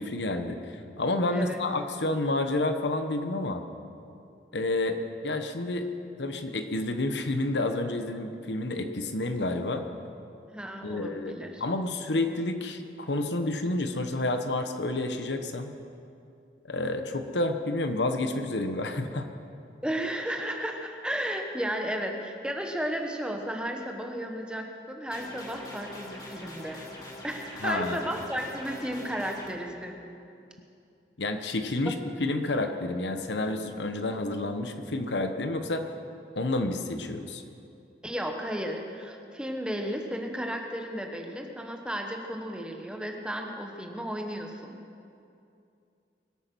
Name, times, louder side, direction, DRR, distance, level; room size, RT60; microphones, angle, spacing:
voice 1, 0.0-3.6 4.5-5.0 5.2-5.9 6.2-9.8 10.8-15.7 16.6-19.3 27.6-28.0 31.2-31.9 32.2-35.8 36.4-37.4, left 2 dB, 80° left, 7 dB, 1.1 m, -29 dB
voice 2, 1.3-1.6 10.5-11.6 19.8-26.8 27.2-30.0 38.0-44.8, equal, 5° right, 2 dB, 1.2 m, -34 dB
sound 1, 25.1-29.5, left 1 dB, 20° left, 2.1 m, -43 dB
22.5 x 8.5 x 6.2 m, 2.6 s
head